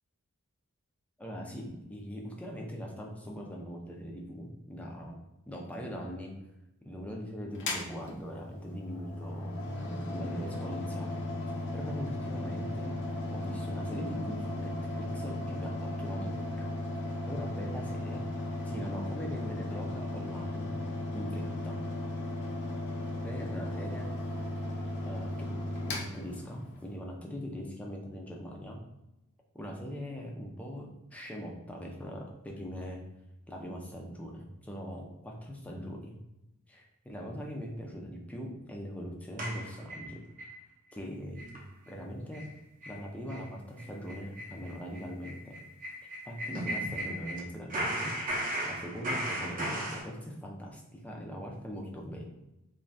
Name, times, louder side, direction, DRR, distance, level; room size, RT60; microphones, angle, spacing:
voice 1, 1.2-5.2 5.5-6.3 6.8-9.6 10.1-11.2 11.7-13.0 13.3-16.7 17.3-18.3 18.6-20.8 21.1-21.8 23.2-24.1 25.0-25.5 25.9-28.8 29.5-33.0 33.5-36.2 36.7-40.2 40.9-41.6 41.9-42.5 42.9-45.5 46.3-48.2 48.6-52.3, equal, 5° left, -1 dB, 0.4 m, -41 dB
Mechanical fan, 7.5-26.9, left 1 dB, 55° left, 0.6 m, -36 dB
sound 1, 39.4-40.5 40.9-41.0 41.4-41.6 41.9-42.0 42.3-42.5 42.8-43.0 43.3-43.4 43.8-47.4 47.7-50.0, right 1 dB, 35° right, 0.6 m, -36 dB
2.5 x 2.2 x 3.2 m, 0.94 s
head